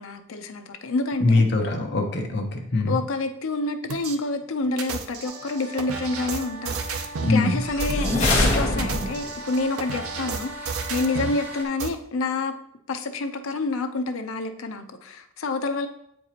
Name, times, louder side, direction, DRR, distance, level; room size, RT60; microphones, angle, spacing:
voice 1, 0.0-1.4 2.9-12.5 12.9-15.9, left 3 dB, 75° left, 7 dB, 0.6 m, -28 dB
voice 2, 1.2-3.0 7.2-7.6, left 2 dB, 50° left, 3 dB, 0.9 m, -22 dB
sound 1, 3.9-4.2 4.8-7.4 7.8-8.2 8.7-11.4 11.8-11.9, right 5 dB, 90° right, 0.6 m, -32 dB
sound 2, 5.2-11.7, equal, 10° right, 0.7 m, -39 dB
sound 3, 7.6-9.4, left 2 dB, 30° left, 1.3 m, -23 dB
8.1 x 4.6 x 2.9 m, 0.71 s
head